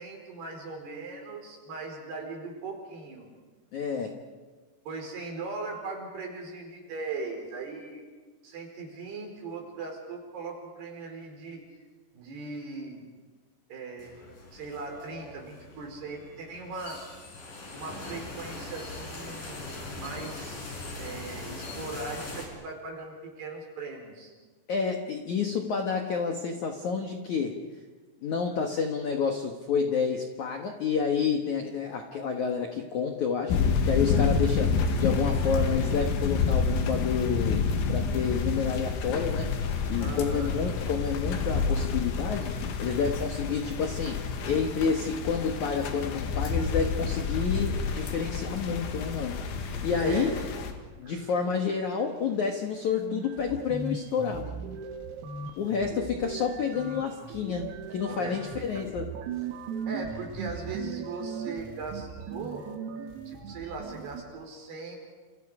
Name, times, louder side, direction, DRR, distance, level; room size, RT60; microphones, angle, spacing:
voice 1, 0.0-3.3 4.9-8.1 8.4-11.6 12.1-13.0 13.7-14.2 14.5-17.0 17.7-24.3 40.0-40.5 50.0-50.4 51.0-51.3 58.1-58.8 59.9-62.7 63.3-65.0, right 3 dB, 50° right, 2 dB, 6.4 m, -39 dB
voice 2, 3.7-4.2 24.7-27.6 28.2-39.5 39.9-49.5 49.8-50.4 51.0-54.5 55.6-59.1, left 6 dB, 85° left, 3 dB, 1.6 m, -29 dB
sound 1, 14.0-22.5, left 2 dB, 40° left, 6.1 m, -41 dB
sound 2, 33.5-50.7, left 5 dB, 70° left, 4.2 m, -29 dB
sound 3, 52.6-52.7 53.0-64.2, right 5 dB, 80° right, 5.0 m, -38 dB
30.0 x 28.5 x 5.0 m, 1.4 s
omnidirectional pair, 6.0 m